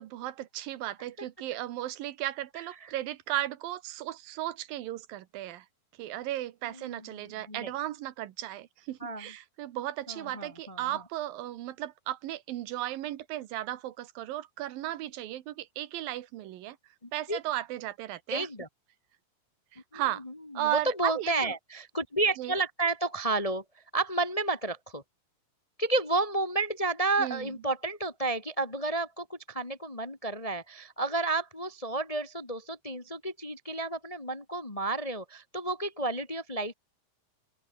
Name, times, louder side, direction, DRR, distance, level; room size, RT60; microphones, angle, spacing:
voice 1, 0.0-5.7 6.0-16.8 17.1-18.5 19.7-20.2 20.5-21.5 22.4-22.5 27.2-27.5, right 14 dB, 75° right, 2.9 m, -35 dB
voice 2, 6.6-7.1 7.5-7.7 9.0-9.3 10.1-10.8 17.0-17.4 18.3-18.7 19.9-23.6 23.9-25.0 25.8-36.7, right 2 dB, 45° left, 0.4 m, -31 dB
open air
omnidirectional pair, 4.2 m